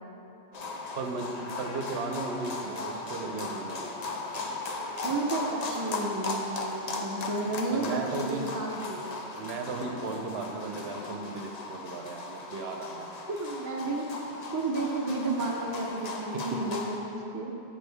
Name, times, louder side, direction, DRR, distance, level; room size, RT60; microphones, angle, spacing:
sound 1, 0.5-17.0, left 3 dB, 45° left, 0.6 m, -37 dB
voice 1, 0.9-4.1 7.7-8.4 9.3-13.1 16.3-16.6, right 3 dB, 75° right, 4 dB, 0.8 m, -36 dB
voice 2, 5.0-9.4 13.3-14.2 14.5-17.5, right 2 dB, 25° right, 0 dB, 0.5 m, -32 dB
7.7 x 6.2 x 3.4 m, 2.8 s
omnidirectional pair, 1.1 m